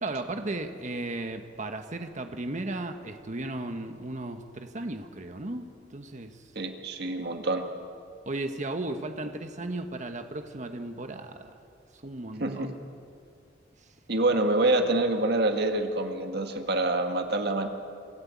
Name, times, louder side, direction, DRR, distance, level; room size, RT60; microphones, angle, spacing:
voice 1, 0.0-6.4 8.3-11.5 12.0-12.7, right 2 dB, 40° right, 6 dB, 1.2 m, -35 dB
voice 2, 6.6-7.6 12.4-12.7 14.1-17.7, right 2 dB, 60° right, 5 dB, 1.8 m, -26 dB
27.0 x 14.0 x 8.5 m, 2.4 s
head